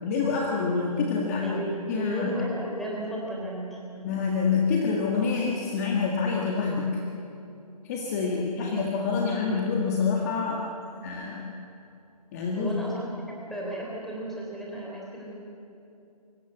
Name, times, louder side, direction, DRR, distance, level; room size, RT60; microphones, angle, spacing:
voice 1, 0.0-1.6 1.9-2.4 4.0-7.0 7.8-10.7 11.0-11.5 12.3-12.8, left 5 dB, 25° left, -1 dB, 1.8 m, -27 dB
voice 2, 1.4-3.8 8.2-8.7 12.6-15.3, right 1 dB, ahead, -4 dB, 3.7 m, -34 dB
24.0 x 19.0 x 8.1 m, 2.7 s
hypercardioid pair, 160°, 20 cm